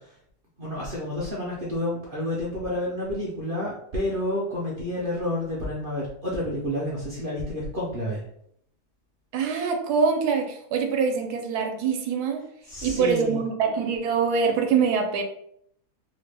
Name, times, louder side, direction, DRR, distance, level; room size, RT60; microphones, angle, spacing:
voice 1, 0.6-8.2 12.7-13.4, left 1 dB, 55° right, -5 dB, 0.6 m, -29 dB
voice 2, 9.3-12.5 12.8-15.2, right 5 dB, 85° right, 4 dB, 1.1 m, -24 dB
3.0 x 2.1 x 3.3 m, 0.69 s
omnidirectional pair, 1.7 m